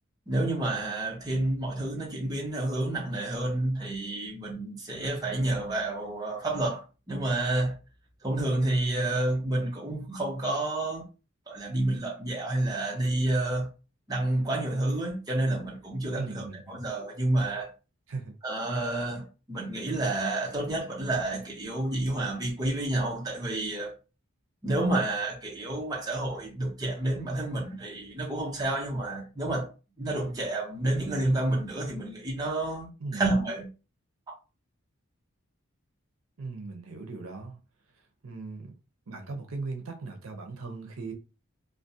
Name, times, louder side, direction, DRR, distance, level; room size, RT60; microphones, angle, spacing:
voice 1, 0.3-7.8 8.2-11.1 11.5-13.7 14.1-17.7 18.4-23.9 24.6-29.7 30.0-33.7, right 2 dB, 20° right, 0.5 m, -29 dB
voice 2, 16.1-16.8 18.1-18.3 33.0-33.2 36.4-37.6 38.2-38.8 39.1-41.1, right 3 dB, 75° right, 0.6 m, -38 dB
2.4 x 2.0 x 2.6 m
head